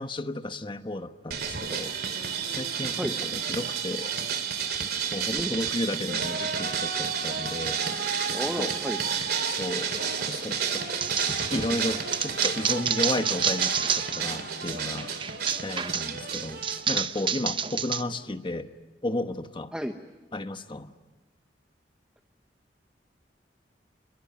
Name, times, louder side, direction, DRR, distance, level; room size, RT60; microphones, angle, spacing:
voice 1, 0.0-4.1 5.1-7.8 8.3-8.7 9.4-10.8 11.5-15.1 15.6-16.6 16.9-18.7 19.0-19.7 20.3-20.9, left 1 dB, 30° left, 9 dB, 1.1 m, -33 dB
sound 1, 1.3-16.8, right 6 dB, 60° right, 2.8 m, -31 dB
voice 2, 8.3-9.0 19.7-19.9, equal, 5° right, 6 dB, 1.0 m, -32 dB
sound 2, 11.0-14.3 14.7-18.0, right 6 dB, 30° right, 0.8 m, -29 dB
28.5 x 22.0 x 9.4 m, 1.2 s
head